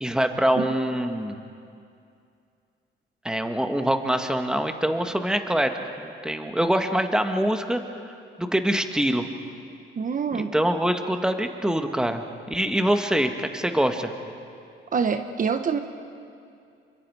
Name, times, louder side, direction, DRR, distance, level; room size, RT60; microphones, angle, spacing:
voice 1, 0.0-1.4 3.2-5.7 6.0-9.2 10.5-14.1, right 1 dB, 5° right, 6 dB, 1.6 m, -24 dB
voice 2, 10.0-10.5 14.9-15.8, right 6 dB, 45° right, 8 dB, 1.0 m, -25 dB
28.0 x 24.5 x 4.9 m, 2.4 s
cardioid pair, 90°, 20 cm